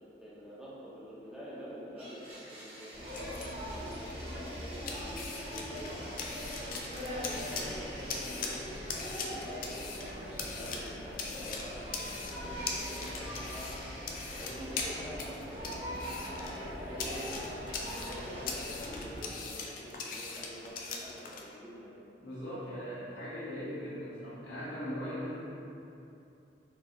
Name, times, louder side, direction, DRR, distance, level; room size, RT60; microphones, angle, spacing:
voice 1, 0.0-3.2 3.8-6.3 6.6-8.6 9.0-13.7 14.4-17.5 17.9-22.0, equal, 5° right, -9 dB, 0.6 m, -48 dB
Domestic sounds home sounds, 2.0-11.1 11.4-11.5 12.3-16.2 18.0-18.9, right 1 dB, 35° right, 0.9 m, -50 dB
sound 1, 2.9-21.4, left 4 dB, 50° left, 0.3 m, -42 dB
sound 2, 2.9-19.2, equal, 80° right, 1.4 m, -41 dB
voice 2, 22.2-25.3, equal, 75° left, -10 dB, 1.1 m, -39 dB
4.0 x 2.7 x 2.4 m, 2.8 s
head